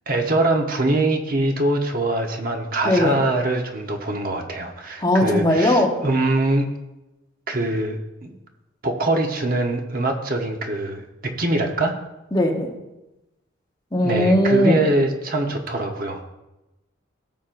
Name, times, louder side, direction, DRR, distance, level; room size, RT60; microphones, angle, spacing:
voice 1, 0.1-6.7 7.5-8.3 8.8-11.9 14.0-16.2, right 2 dB, 45° right, 3 dB, 1.1 m, -23 dB
voice 2, 2.8-3.2 5.0-5.9 12.3-12.7 13.9-14.8, left 1 dB, 20° left, 0 dB, 1.1 m, -19 dB
17.5 x 7.3 x 2.6 m, 0.98 s
head